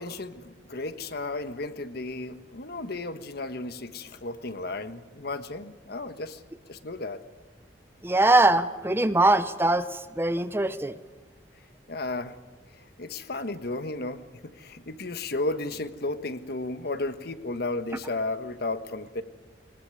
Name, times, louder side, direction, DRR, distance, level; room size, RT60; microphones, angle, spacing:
voice 1, 0.0-6.4 6.7-7.2 11.9-12.4 12.8-19.2, left 2 dB, 60° left, 10 dB, 1.3 m, -34 dB
voice 2, 8.0-9.9 10.2-10.9, right 2 dB, 15° right, 12 dB, 0.7 m, -22 dB
21.0 x 20.0 x 9.5 m, 1.3 s
head